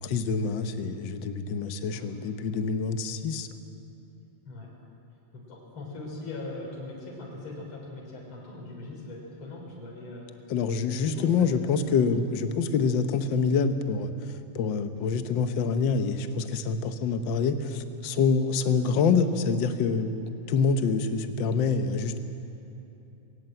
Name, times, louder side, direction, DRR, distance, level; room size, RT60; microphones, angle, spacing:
voice 1, 0.0-3.5 10.5-20.1 20.5-22.2, left 5 dB, 65° left, 8 dB, 1.2 m, -26 dB
voice 2, 5.3-10.4 10.9-12.0 18.6-18.7, left 2 dB, 45° left, -2 dB, 4.4 m, -41 dB
21.5 x 18.5 x 7.8 m, 2.8 s
omnidirectional pair, 3.3 m